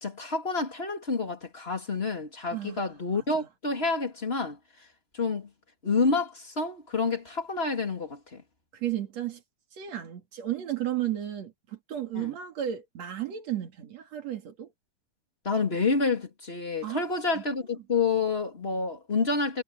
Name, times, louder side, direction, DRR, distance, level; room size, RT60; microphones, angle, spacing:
voice 1, 0.0-4.6 5.1-5.5 5.8-8.4 12.1-12.3 15.4-19.6, left 4 dB, 20° left, 2.9 m, -28 dB
voice 2, 2.5-2.8 3.1-3.5 8.7-9.4 9.7-14.7 16.8-17.4, right 12 dB, 60° right, 3.4 m, -34 dB
omnidirectional pair, 3.6 m